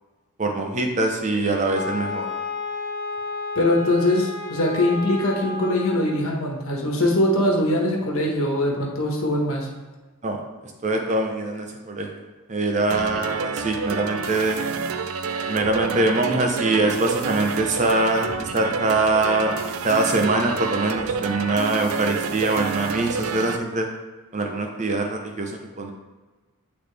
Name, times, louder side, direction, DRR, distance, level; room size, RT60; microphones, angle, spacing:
voice 1, 0.4-2.3 10.2-10.4 10.8-12.2 12.5-14.6 15.5-19.6 19.8-23.9 24.3-25.5 25.8-25.9, right 2 dB, 35° right, 2 dB, 0.7 m, -23 dB
Wind instrument woodwind instrument, 1.7-6.2, left 3 dB, 45° left, 0.9 m, -32 dB
voice 2, 3.5-9.7, left 1 dB, 70° left, -1 dB, 1.3 m, -22 dB
sound 1, 12.9-23.6, right 5 dB, 70° right, 0.4 m, -29 dB
8.6 x 4.0 x 3.4 m, 1.3 s
head